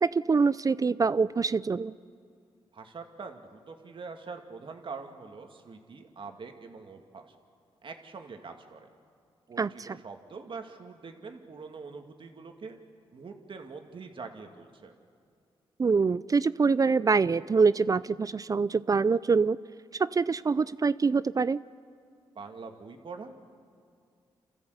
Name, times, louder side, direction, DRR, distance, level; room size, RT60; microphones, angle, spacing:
voice 1, 0.0-1.9 9.6-10.0 15.8-19.6 20.0-21.6, right 4 dB, 35° right, 18 dB, 0.4 m, -25 dB
voice 2, 2.7-7.3 7.8-8.9 9.5-12.8 13.1-14.9 22.3-23.3, right 4 dB, 55° right, 4 dB, 2.3 m, -44 dB
28.0 x 14.5 x 8.1 m, 2.3 s
cardioid pair, 65°, 10 cm